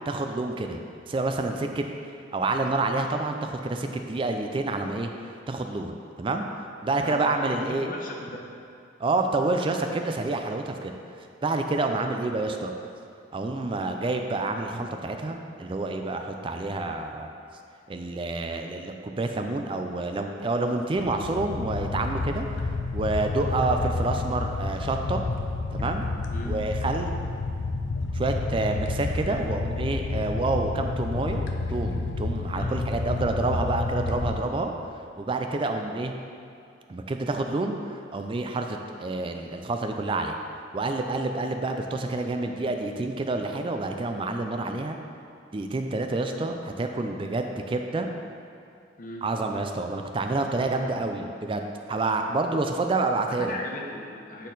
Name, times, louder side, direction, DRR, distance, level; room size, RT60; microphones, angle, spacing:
voice 1, 0.1-0.8 1.1-1.9 2.3-5.1 5.5-6.5 6.8-7.9 9.0-11.0 11.4-12.7 13.3-17.3 17.9-22.5 22.9-25.2 25.7-26.1 26.4-27.2 28.1-31.4 31.7-34.7 35.2-36.1 36.9-40.4 40.7-45.0 45.5-48.1 49.2-53.5, right 2 dB, 30° right, 4 dB, 0.4 m, -28 dB
voice 2, 7.0-8.5 12.4-12.6 23.3-23.6 26.3-26.6 29.2-29.5 32.5-32.8 49.0-49.3 53.4-54.5, left 1 dB, 50° left, 0 dB, 0.8 m, -38 dB
sound 1, 21.0-34.4, left 3 dB, 85° left, 0.4 m, -30 dB
8.2 x 4.2 x 3.9 m, 2.4 s
head